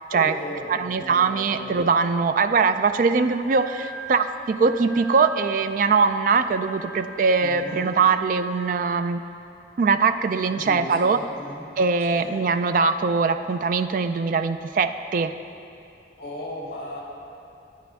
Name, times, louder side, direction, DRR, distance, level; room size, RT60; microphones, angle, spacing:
voice 1, 0.1-1.9 7.4-7.9 10.5-11.7 12.0-12.4 16.2-17.0, left 1 dB, 55° left, -4 dB, 2.2 m, -37 dB
voice 2, 0.7-9.2 9.8-11.2 11.8-15.3, right 4 dB, 50° right, 10 dB, 0.3 m, -22 dB
Wind instrument woodwind instrument, 3.3-8.6, right 2 dB, 5° right, 0.8 m, -42 dB
11.0 x 9.0 x 3.5 m, 2.6 s
head